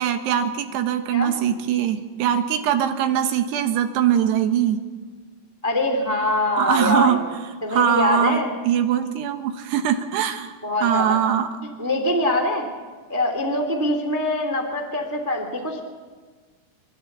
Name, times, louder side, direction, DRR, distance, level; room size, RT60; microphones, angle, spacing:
voice 1, 0.0-4.8 6.6-7.2 7.7-8.4 8.7-10.5 10.8-11.5, right 9 dB, 75° right, 7 dB, 3.3 m, -21 dB
voice 2, 5.6-7.2 7.6-8.5 10.6-11.2 11.8-12.7 13.1-15.8, left 2 dB, 10° right, 3 dB, 1.2 m, -23 dB
27.5 x 12.5 x 8.1 m, 1.4 s
omnidirectional pair, 5.1 m